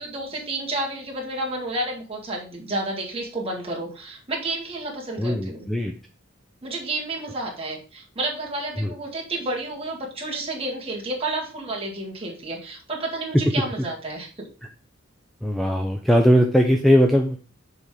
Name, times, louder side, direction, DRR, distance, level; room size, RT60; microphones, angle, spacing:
voice 1, 0.0-5.7 6.6-14.5, right 2 dB, 30° right, -2 dB, 1.8 m, -30 dB
voice 2, 5.2-5.9 8.8-8.9 15.4-17.4, equal, ahead, 3 dB, 0.5 m, -19 dB
6.7 x 3.7 x 4.9 m, 0.37 s
head